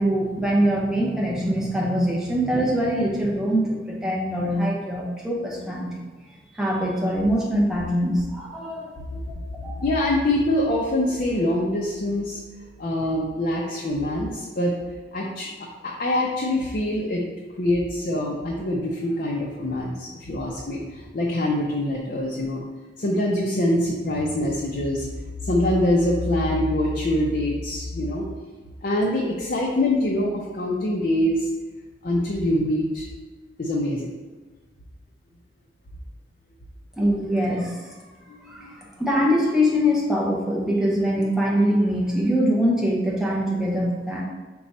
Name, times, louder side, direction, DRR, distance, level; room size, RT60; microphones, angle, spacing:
voice 1, 0.0-6.0 6.5-9.0 9.6-9.8 37.0-37.9 38.5-44.2, equal, 5° right, -4 dB, 0.7 m, -23 dB
voice 2, 9.1-12.4 12.8-14.7 15.1-17.2 17.6-22.6 23.0-25.1 25.4-28.3 28.8-31.5 32.0-33.1 33.6-34.2 38.3-38.7, left 1 dB, 45° left, -3 dB, 0.5 m, -24 dB
5.0 x 2.3 x 4.1 m, 1.3 s
head